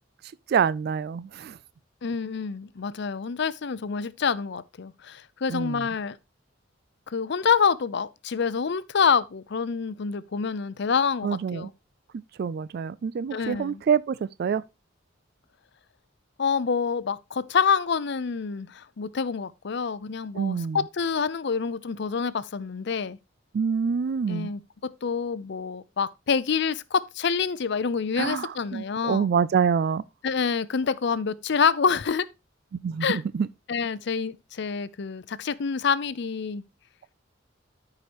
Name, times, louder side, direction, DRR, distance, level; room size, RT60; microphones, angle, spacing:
voice 1, 0.5-1.6 5.5-5.8 11.2-11.7 12.4-14.6 20.3-20.8 23.5-24.5 28.2-30.0 32.8-33.5, right 6 dB, 55° right, 0.3 m, -26 dB
voice 2, 2.0-6.2 7.1-11.7 13.3-13.8 16.4-23.2 24.3-29.3 30.2-32.3 33.0-33.2 33.7-36.6, left 6 dB, 60° left, 0.5 m, -27 dB
13.5 x 4.9 x 2.9 m
head